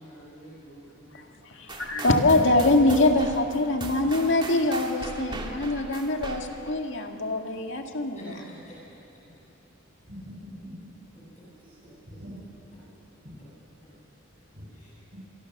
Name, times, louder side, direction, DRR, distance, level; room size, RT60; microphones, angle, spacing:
voice 1, 0.0-1.4 8.1-9.2 11.3-11.4 11.8-12.2 14.7-15.0, equal, 35° left, -6 dB, 7.8 m, -47 dB
voice 2, 1.5-8.2, left 2 dB, 60° left, 3 dB, 2.1 m, -23 dB
sound 1, 1.7-6.8, right 2 dB, 25° right, 2.0 m, -39 dB
voice 3, 3.0-3.8 4.2-5.2 10.1-10.9 11.6-11.7 12.1-12.6 13.2-13.3 14.5-14.6, equal, 45° right, -9 dB, 7.8 m, -46 dB
25.5 x 24.0 x 6.7 m, 2.7 s
head